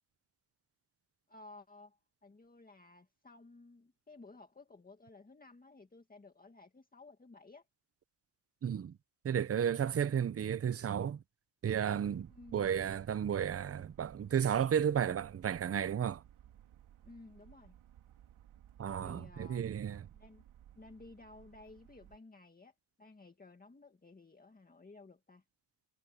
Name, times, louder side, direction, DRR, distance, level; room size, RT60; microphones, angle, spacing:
voice 1, 1.3-7.7 12.3-12.7 17.0-17.8 19.0-19.6 20.1-20.4 20.7-25.4, left 3 dB, 15° left, 2.0 m, -56 dB
voice 2, 8.6-9.0 9.2-11.2 11.6-16.2 18.8-20.1, right 8 dB, 30° right, 0.6 m, -33 dB
sound 1, 11.9-22.2, right 11 dB, 75° right, 2.4 m, -59 dB
cardioid pair, 120°, 49 cm